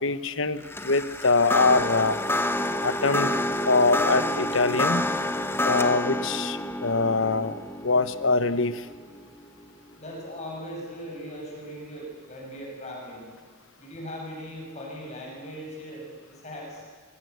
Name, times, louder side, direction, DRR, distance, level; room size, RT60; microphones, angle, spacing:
voice 1, 0.0-2.2 2.8-3.3 3.7-5.0 5.6-8.9, left 3 dB, 80° left, 13 dB, 1.2 m, -24 dB
sound 1, 0.6-9.9, left 1 dB, 10° left, 1.1 m, -29 dB
voice 2, 10.0-13.2 13.8-16.8, equal, 35° left, -2 dB, 7.5 m, -39 dB
25.5 x 24.5 x 8.2 m, 1.5 s
head